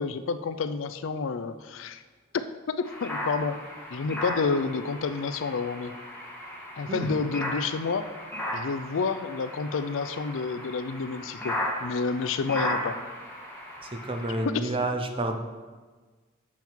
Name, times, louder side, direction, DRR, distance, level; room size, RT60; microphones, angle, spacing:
voice 1, 0.0-2.0 2.3-3.6 3.9-5.9 6.8-8.1 8.5-13.0 14.5-14.7, left 4 dB, 70° left, 12 dB, 0.4 m, -29 dB
sound 1, 2.8-14.4, left 1 dB, 10° left, 1.6 m, -36 dB
voice 2, 13.8-15.4, right 2 dB, 25° right, 5 dB, 0.6 m, -30 dB
7.4 x 5.7 x 4.5 m, 1.4 s
head